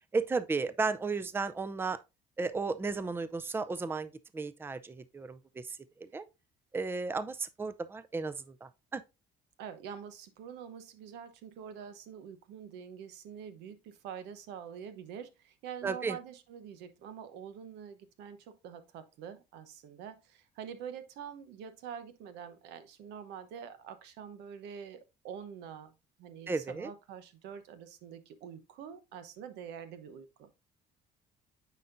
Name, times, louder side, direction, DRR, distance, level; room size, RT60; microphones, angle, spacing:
voice 1, 0.1-2.0 2.4-6.2 6.7-9.0 15.8-16.2 26.5-26.9, right 4 dB, 15° right, 0.4 m, -34 dB
voice 2, 9.6-25.9 26.2-30.5, right 8 dB, 90° right, 0.9 m, -46 dB
9.2 x 4.3 x 2.6 m
cardioid pair, 110°, 17 cm